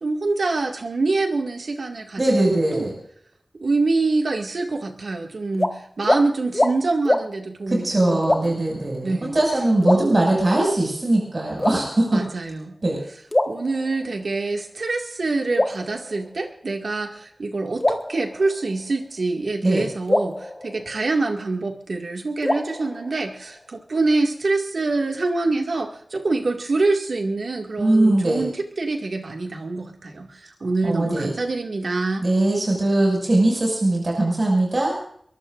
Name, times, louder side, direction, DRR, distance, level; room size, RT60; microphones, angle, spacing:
voice 1, 0.0-2.9 3.5-8.6 9.0-9.3 9.9-10.3 12.1-12.8 13.5-32.3, right 3 dB, 80° right, 2 dB, 2.1 m, -25 dB
voice 2, 2.2-2.9 7.7-12.2 12.8-13.0 19.6-19.8 27.8-28.4 30.8-31.3 32.2-34.9, right 1 dB, 45° right, -1 dB, 6.3 m, -20 dB
sound 1, 5.5-5.7 6.0-6.2 6.5-6.7 7.1-7.3 8.2-8.7 9.8-10.7 11.6-12.3 13.3-14.3 15.5-16.7 17.8-19.0 20.1-21.5 22.4-23.6, left 1 dB, 25° left, 1.5 m, -25 dB
23.0 x 21.5 x 2.6 m, 0.64 s
wide cardioid pair, 80°, 0 cm